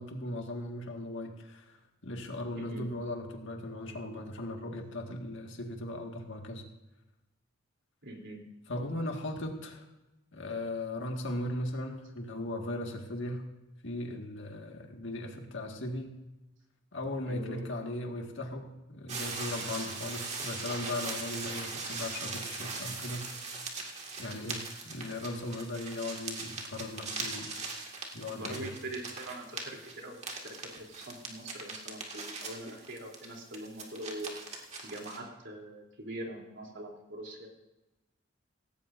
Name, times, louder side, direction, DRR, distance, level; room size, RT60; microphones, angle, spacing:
voice 1, 0.0-6.6 8.7-9.9 10.3-13.5 13.8-16.1 16.9-23.3 24.2-27.8 28.1-28.7, left 1 dB, 65° left, 2 dB, 1.9 m, -38 dB
voice 2, 2.5-2.8 8.0-8.4 17.3-17.9 24.3-24.5 28.3-34.3 34.8-37.5, right 1 dB, 60° right, 0 dB, 3.3 m, -43 dB
sound 1, 19.1-35.2, right 3 dB, 35° right, 2.1 m, -40 dB
17.0 x 16.5 x 2.7 m, 1.0 s
head